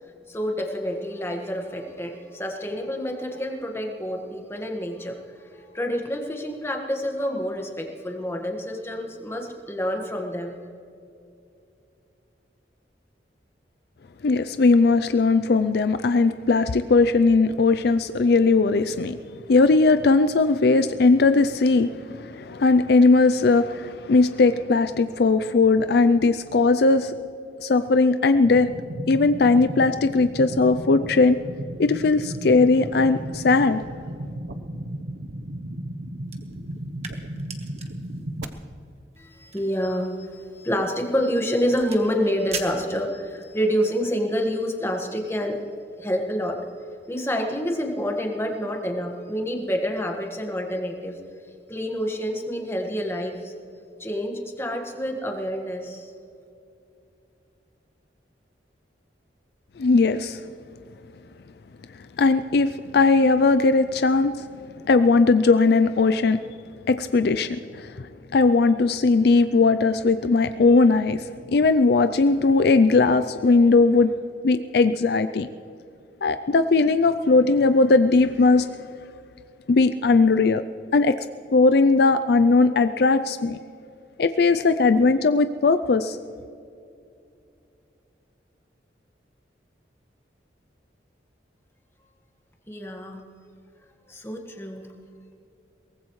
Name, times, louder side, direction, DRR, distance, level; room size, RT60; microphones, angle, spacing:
voice 1, 0.3-10.6 39.2-45.6 46.0-46.6 47.1-51.2 51.7-53.5 54.0-56.1 92.7-93.2 94.1-94.9, equal, 15° left, 2 dB, 1.6 m, -28 dB
voice 2, 14.2-19.2 19.5-27.1 27.6-28.7 29.1-31.4 31.8-33.8 59.8-60.4 62.2-64.5 64.9-66.4 66.9-74.1 74.4-75.5 76.2-78.7 79.7-80.6 80.9-81.2 81.5-83.6 84.2-86.2, left 3 dB, 60° left, 11 dB, 0.4 m, -19 dB
sound 1, 28.4-38.4, right 1 dB, 65° right, 0.9 m, -35 dB
sound 2, 36.2-43.6, right 5 dB, 35° right, 1.4 m, -42 dB
23.0 x 18.5 x 3.2 m, 2.6 s
head